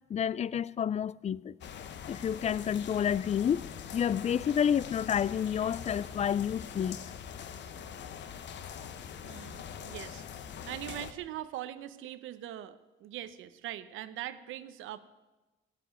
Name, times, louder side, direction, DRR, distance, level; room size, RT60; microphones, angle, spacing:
voice 1, 0.1-1.5 2.1-3.7 3.9-7.0, left 8 dB, 35° left, 0.4 m, -29 dB
sound 1, 1.6-11.1, left 8 dB, 65° left, 1.0 m, -43 dB
voice 2, 9.2-15.0, right 13 dB, 90° right, 0.8 m, -42 dB
17.0 x 6.0 x 9.3 m
cardioid pair, 90°, 20 cm